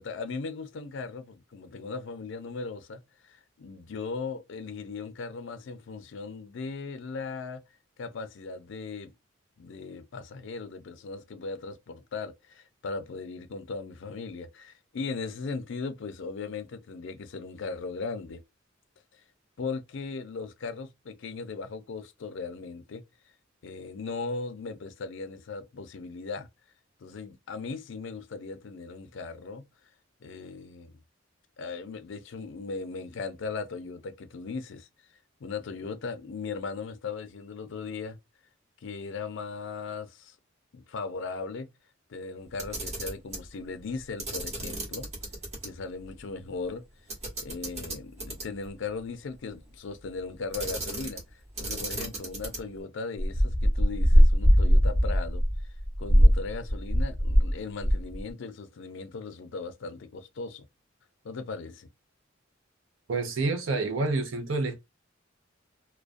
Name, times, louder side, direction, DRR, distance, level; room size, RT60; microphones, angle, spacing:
voice 1, 0.0-7.6 8.0-9.1 9.6-18.4 19.6-23.0 23.6-26.5 27.0-29.6 30.2-31.0 31.6-34.9 35.4-38.2 38.8-40.3 40.7-41.7 42.1-45.1 45.6-46.8 47.4-51.2 51.6-55.4 56.0-60.6 61.2-61.9, left 4 dB, 65° left, 0.4 m, -38 dB
Camera, 42.5-43.5 44.2-45.7 46.0-46.1 47.1-48.7 50.5-51.3 51.6-52.8, right 2 dB, 35° right, 0.9 m, -36 dB
sound 1, 53.2-57.5 57.8-58.2, equal, 20° left, 0.6 m, -20 dB
voice 2, 63.1-64.8, right 3 dB, 75° right, 0.5 m, -28 dB
2.3 x 2.1 x 2.4 m
head